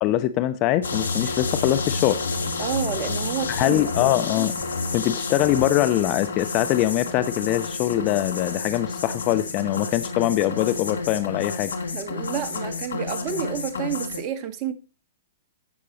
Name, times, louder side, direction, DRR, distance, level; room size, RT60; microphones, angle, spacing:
voice 1, 0.0-2.2 3.5-4.5 4.9-11.7, left 14 dB, 40° left, 0.8 m, -23 dB
sound 1, 0.8-14.2, left 4 dB, 80° left, 1.6 m, -30 dB
voice 2, 2.6-4.1 11.9-14.7, right 9 dB, 35° right, 1.7 m, -30 dB
16.0 x 6.3 x 3.0 m
hypercardioid pair, 120°, 0 cm